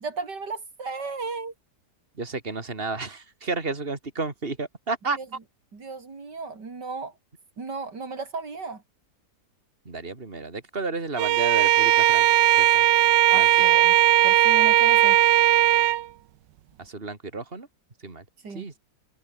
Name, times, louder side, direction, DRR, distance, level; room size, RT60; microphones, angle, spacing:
voice 1, 0.0-1.5 5.2-5.3 5.7-7.1 7.6-8.8 13.3-14.0 14.2-15.2 18.4-18.7, right 4 dB, 70° right, 4.3 m, -35 dB
voice 2, 2.2-5.2 9.8-12.8 13.3-13.7 16.8-17.7 18.0-18.2 18.5-18.8, right 3 dB, 30° right, 3.4 m, -32 dB
Bowed string instrument, 11.2-16.1, right 14 dB, 90° right, 1.4 m, -18 dB
omnidirectional pair, 1.9 m